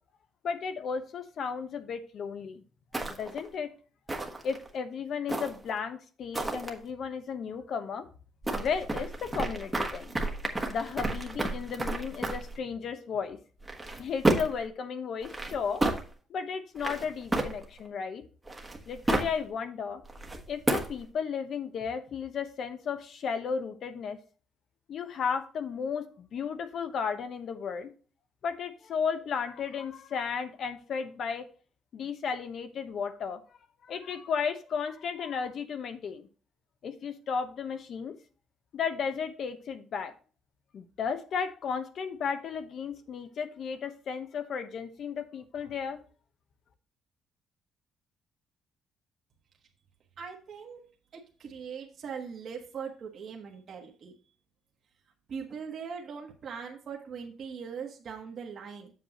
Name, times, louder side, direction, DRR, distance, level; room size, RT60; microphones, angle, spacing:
voice 1, 0.4-2.6 3.2-3.7 4.4-8.0 8.5-10.1 10.7-13.4 14.0-15.8 16.3-18.2 18.9-20.0 20.5-24.2 24.9-27.9 28.4-31.5 31.9-33.4 33.8-36.3 36.8-38.1 38.7-40.1 40.7-46.0, left 6 dB, 50° left, 9 dB, 0.9 m, -34 dB
sound 1, 2.9-3.5 4.1-4.7 5.3-5.8 6.3-6.7 8.4-12.6 13.6-14.6 15.2-16.0 16.8-17.9 18.5-19.4 20.0-21.0, right 2 dB, 10° right, 1.2 m, -31 dB
voice 2, 50.2-50.8 51.1-54.1 55.3-58.9, right 6 dB, 45° right, 0 dB, 1.3 m, -40 dB
7.6 x 7.3 x 3.0 m, 0.39 s
cardioid pair, 145°, 0 cm